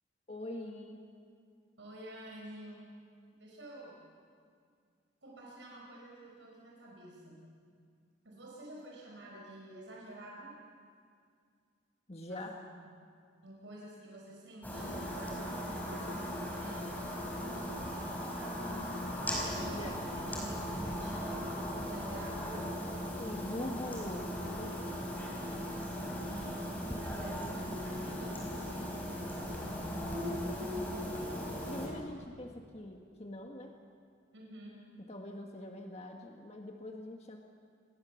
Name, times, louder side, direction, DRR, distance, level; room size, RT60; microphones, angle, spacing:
voice 1, 0.3-1.0 12.1-12.6 19.6-20.0 23.2-25.1 31.5-33.7 35.1-37.4, left 1 dB, 35° left, 2 dB, 1.6 m, -43 dB
voice 2, 1.8-2.9 3.3-4.0 5.2-7.5 8.2-10.5 12.3-12.9 13.4-18.9 19.3-22.6 26.1-27.4 27.7-29.7 34.3-34.8, right 1 dB, 85° right, -3 dB, 5.4 m, -50 dB
sound 1, 14.6-31.9, equal, 10° left, 5.1 m, -38 dB
28.5 x 20.5 x 7.2 m, 2.2 s
head